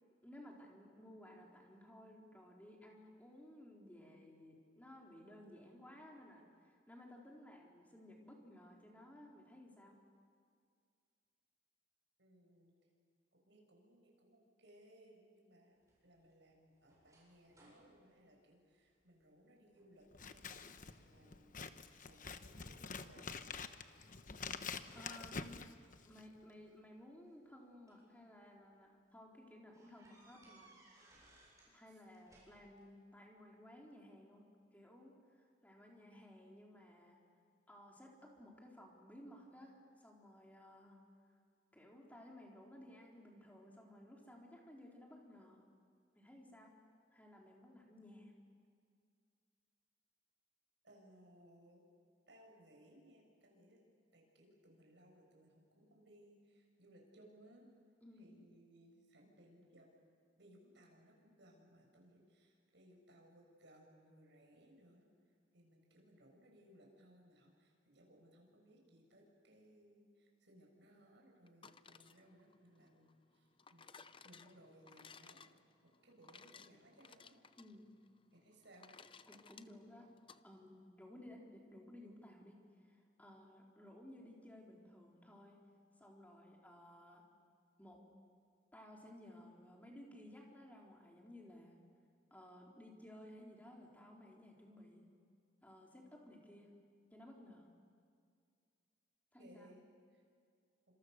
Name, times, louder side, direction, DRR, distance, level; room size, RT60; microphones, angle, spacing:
voice 1, 0.2-10.0 24.9-25.6 26.0-31.1 31.6-34.5 34.7-37.2 37.7-41.0 41.7-45.6 46.2-46.7 47.1-48.3 58.0-58.3 77.6-77.9 79.3-80.1 80.4-85.6 86.0-87.2 87.8-88.0 88.7-91.8 92.3-95.1 95.6-96.7 97.1-97.7 99.3-99.7, left 1 dB, 10° left, -1 dB, 4.0 m, -57 dB
voice 2, 12.2-12.8 13.3-23.5 25.1-25.3 31.9-32.0 50.8-51.8 52.3-53.8 54.1-57.7 58.1-59.9 60.4-65.1 65.5-73.9 74.2-75.5 75.8-77.4 78.3-78.9 99.4-99.8 100.1-100.2, right 1 dB, 65° right, 0 dB, 6.9 m, -64 dB
sound 1, 15.8-19.3 19.7-20.0 20.3-21.0 21.4-22.2 22.8-24.2 25.4-25.5 26.7-28.1 28.6-28.8 29.1-29.2 29.7-31.7 32.0-32.9, right 2 dB, 15° right, 7.8 m, -67 dB
Scissors, 20.1-26.4, left 5 dB, 45° left, 1.0 m, -47 dB
sound 2, 71.5-80.4, left 5 dB, 25° left, 0.6 m, -60 dB
30.0 x 26.5 x 6.8 m, 2.2 s
head